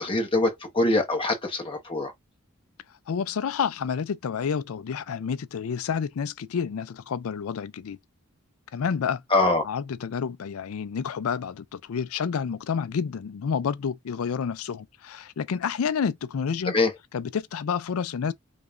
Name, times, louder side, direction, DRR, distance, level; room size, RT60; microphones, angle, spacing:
voice 1, 0.0-2.1 9.3-9.6 16.7-16.9, left 2 dB, 25° left, 1.0 m, -23 dB
voice 2, 3.1-8.0 8.7-9.2 9.6-16.7 17.1-18.3, left 6 dB, 75° left, 0.4 m, -29 dB
4.9 x 2.3 x 2.5 m
head